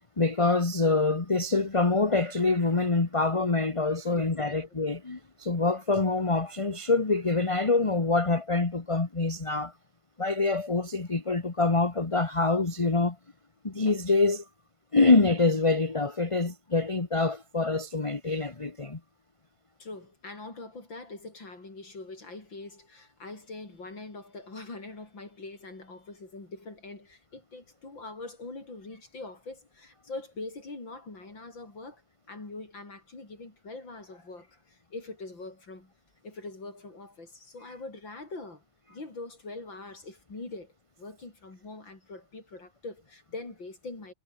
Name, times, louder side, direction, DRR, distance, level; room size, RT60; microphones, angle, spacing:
voice 1, 0.2-9.7 10.2-13.2 13.6-14.4 14.9-19.0, left 3 dB, 20° left, 1.1 m, -25 dB
voice 2, 4.1-4.5 19.8-32.0 32.3-35.9 36.2-38.6 38.9-44.1, left 3 dB, 60° left, 6.2 m, -43 dB
omnidirectional pair, 2.4 m